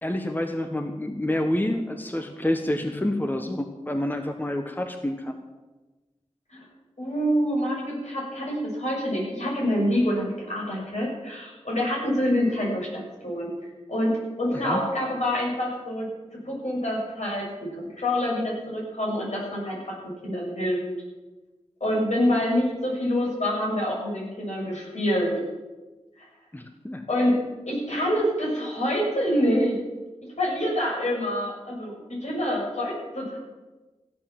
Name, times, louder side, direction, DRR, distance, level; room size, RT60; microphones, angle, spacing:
voice 1, 0.0-5.4 14.5-14.8 26.5-27.0, left 1 dB, 15° left, 5 dB, 1.2 m, -28 dB
voice 2, 7.0-13.5 13.9-20.0 20.2-20.8 21.8-25.4 26.2-26.3 27.1-29.8 30.4-33.4, equal, 70° left, -3 dB, 6.9 m, -26 dB
16.0 x 9.5 x 7.5 m, 1.2 s
wide cardioid pair, 65°, 12 cm